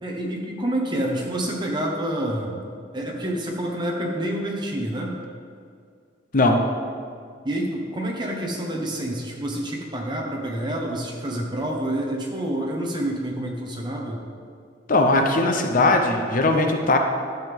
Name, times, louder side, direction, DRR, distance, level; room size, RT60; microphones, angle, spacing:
voice 1, 0.0-2.6 2.9-5.1 7.4-14.2, right 1 dB, 25° right, -1 dB, 1.4 m, -28 dB
voice 2, 14.9-17.0, left 2 dB, 45° left, 4 dB, 0.7 m, -19 dB
12.0 x 7.9 x 3.7 m, 2.2 s
head